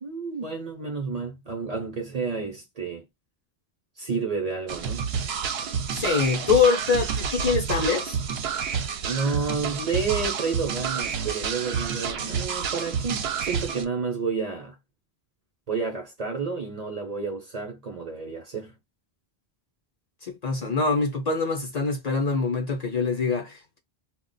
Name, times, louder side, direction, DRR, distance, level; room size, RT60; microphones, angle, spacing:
voice 1, 0.0-3.0 4.0-5.1 9.0-14.8 15.7-18.7, right 5 dB, 45° right, 0.7 m, -30 dB
sound 1, 4.7-13.9, right 6 dB, 75° right, 0.8 m, -29 dB
voice 2, 5.9-8.2 20.2-23.8, left 5 dB, 45° left, 0.7 m, -24 dB
2.4 x 2.2 x 3.8 m
omnidirectional pair, 1.1 m